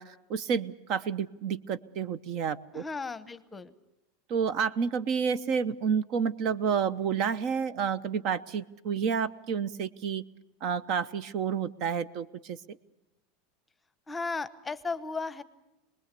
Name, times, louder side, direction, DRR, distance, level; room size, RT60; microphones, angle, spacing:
voice 1, 0.0-2.8 4.3-10.2 10.6-12.6, right 6 dB, 45° right, 17 dB, 0.8 m, -30 dB
voice 2, 2.7-3.7 14.1-15.4, left 4 dB, 10° left, 13 dB, 1.0 m, -35 dB
27.0 x 20.5 x 6.8 m, 0.96 s
supercardioid pair, 150°, 0 cm